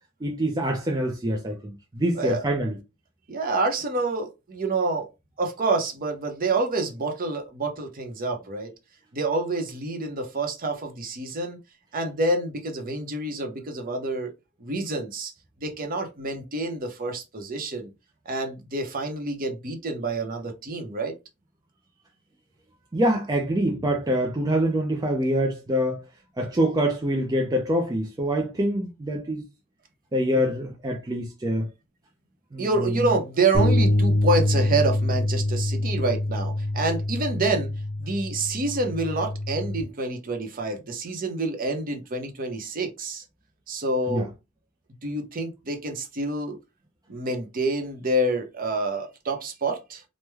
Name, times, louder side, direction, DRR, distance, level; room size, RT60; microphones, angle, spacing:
voice 1, 0.2-2.8 22.9-26.0 26.4-29.4 30.1-31.7 32.5-32.9 44.1-44.3, equal, 20° right, 0.4 m, -25 dB
voice 2, 2.1-2.5 3.3-5.1 5.4-8.7 9.1-11.6 11.9-14.3 14.6-15.3 15.6-17.9 18.3-21.2 32.6-37.7 38.0-43.2 43.7-44.3 45.0-46.6 47.1-50.0, right 2 dB, 45° right, 0.7 m, -27 dB
sound 1, 33.5-39.8, left 1 dB, 40° left, 1.0 m, -25 dB
3.1 x 2.1 x 3.3 m
head